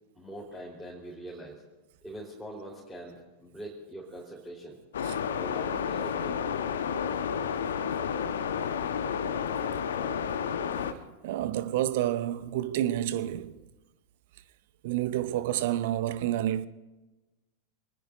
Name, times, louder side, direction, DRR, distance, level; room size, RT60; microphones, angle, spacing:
voice 1, 0.1-1.6 2.0-4.8 5.4-6.4 15.3-15.4, right 1 dB, 5° right, 4.2 m, -43 dB
sound 1, 4.9-10.9, left 7 dB, 65° left, 1.2 m, -31 dB
voice 2, 11.2-13.6 14.8-16.7, right 13 dB, 50° right, 0.8 m, -29 dB
27.0 x 20.0 x 2.7 m
figure-of-eight pair, 90°, 0 cm